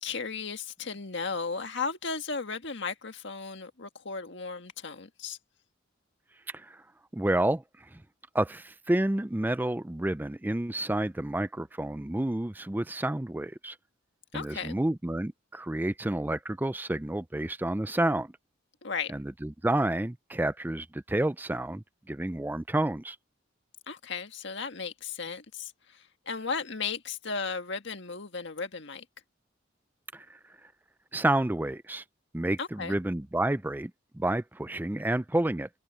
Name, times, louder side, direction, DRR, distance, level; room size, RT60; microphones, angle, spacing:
voice 1, 0.0-5.4 14.3-14.8 18.8-19.1 23.9-29.1 32.6-32.9, left 5 dB, 60° left, 1.7 m, -35 dB
voice 2, 7.1-8.0 8.3-13.8 14.3-18.3 19.1-23.2 30.1-30.4 31.1-32.0 32.3-35.7, right 1 dB, 10° right, 0.4 m, -30 dB
head